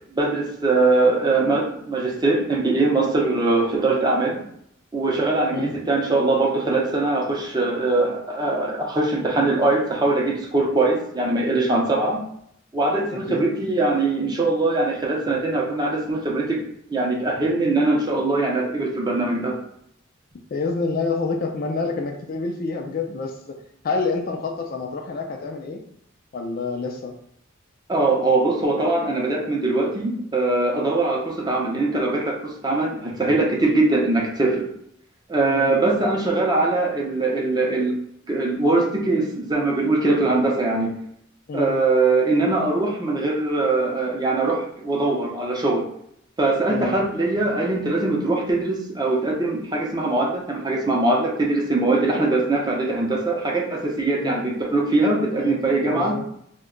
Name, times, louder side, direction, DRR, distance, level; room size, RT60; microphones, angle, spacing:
voice 1, 0.1-4.4 4.9-12.2 12.7-16.6 16.9-19.5 27.9-32.4 32.6-34.7 35.3-37.9 38.3-40.9 41.5-45.8 46.4-56.1, right 2 dB, 20° right, -2 dB, 0.6 m, -22 dB
voice 2, 20.5-25.8 26.3-27.1 35.4-35.7 41.5-41.7 46.7-46.9 54.2-54.4 55.3-55.6 55.9-56.2, left 4 dB, 45° left, 3 dB, 0.4 m, -28 dB
2.7 x 2.2 x 3.8 m, 0.70 s
head